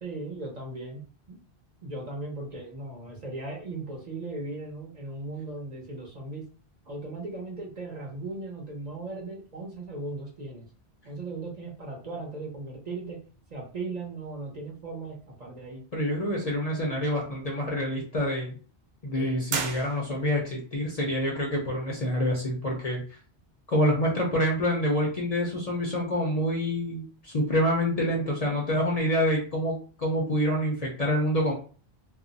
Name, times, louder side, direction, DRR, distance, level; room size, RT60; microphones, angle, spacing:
voice 1, 0.0-1.0 1.3-1.4 1.8-6.4 6.9-10.7 11.0-13.2 13.5-15.8 28.4-29.1, right 2 dB, 45° right, -2 dB, 0.8 m, -37 dB
voice 2, 15.9-18.6 19.0-23.0 23.7-31.5, equal, 45° left, -2 dB, 0.6 m, -27 dB
sound 1, 19.5-20.5, right 5 dB, 75° right, 0.8 m, -33 dB
2.4 x 2.0 x 3.9 m, 0.39 s
omnidirectional pair, 1.1 m